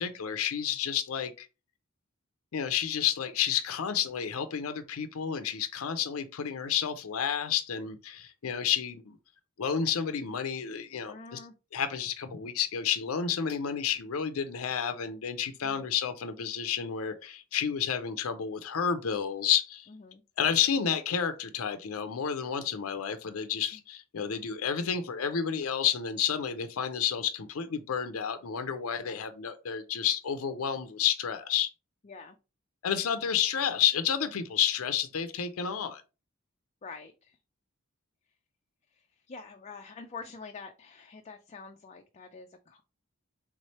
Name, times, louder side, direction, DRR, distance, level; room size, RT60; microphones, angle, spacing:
voice 1, 0.0-1.5 2.5-9.2 9.6-11.4 11.7-19.9 20.4-31.7 32.8-36.0, left 8 dB, 90° left, 0.5 m, -30 dB
voice 2, 11.1-11.5 19.9-20.2 23.7-23.8 29.0-29.2 32.0-32.4 36.8-37.4 38.9-42.8, left 4 dB, 30° left, 0.4 m, -46 dB
3.6 x 3.2 x 4.1 m
head